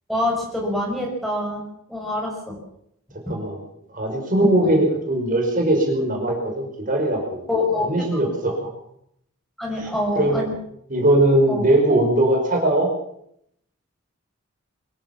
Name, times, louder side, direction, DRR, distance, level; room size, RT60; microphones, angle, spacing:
voice 1, 0.1-1.6 1.9-2.6 3.3-3.4 4.6-4.7 7.5-8.2 9.6-10.5 11.5-11.6, left 1 dB, ahead, -1 dB, 5.5 m, -25 dB
voice 2, 3.3-3.6 3.9-7.5 7.8-8.6 9.8-9.9 10.2-10.4 10.9-12.9, right 1 dB, 40° right, 1 dB, 5.3 m, -20 dB
23.5 x 15.5 x 7.3 m, 0.73 s
head